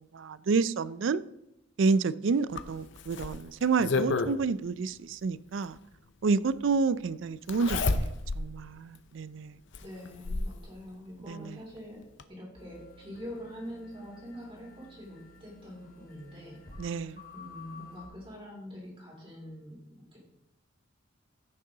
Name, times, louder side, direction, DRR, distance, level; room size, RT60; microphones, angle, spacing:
voice 1, 0.1-1.2 1.8-5.8 6.2-9.6 11.3-11.4 16.8-17.2, right 4 dB, 65° right, 0.4 m, -29 dB
Zipper (clothing), 2.6-4.3 5.8-5.9 7.5-8.5 8.9-9.0 9.7-10.6 11.8-11.9 12.2-12.3, left 3 dB, 60° left, 0.6 m, -30 dB
voice 2, 9.8-16.9 17.3-20.2, equal, 25° right, 3.5 m, -45 dB
sound 1, 12.5-18.1, left 3 dB, 45° left, 2.4 m, -51 dB
15.0 x 6.7 x 3.8 m
head